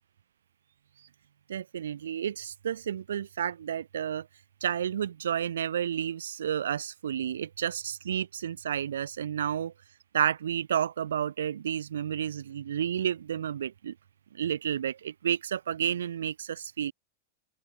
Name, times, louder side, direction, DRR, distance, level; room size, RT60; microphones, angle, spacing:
voice 1, 1.5-4.3 4.6-9.7 10.1-13.9 14.4-16.9, right 9 dB, 65° right, 0.6 m, -31 dB
open air
figure-of-eight pair, 90°, 0 cm